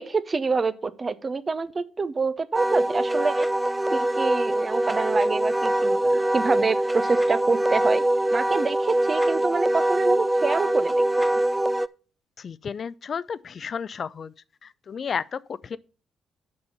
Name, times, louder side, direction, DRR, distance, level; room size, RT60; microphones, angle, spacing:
voice 1, 0.0-8.0 8.3-11.4, right 4 dB, 35° right, 0.8 m, -27 dB
Wind instrument woodwind instrument, 2.5-11.9, right 1 dB, 10° right, 0.4 m, -23 dB
voice 2, 12.4-14.3 14.6-15.8, left 6 dB, 50° left, 0.4 m, -32 dB
6.8 x 5.4 x 6.7 m
hypercardioid pair, 50°, 0 cm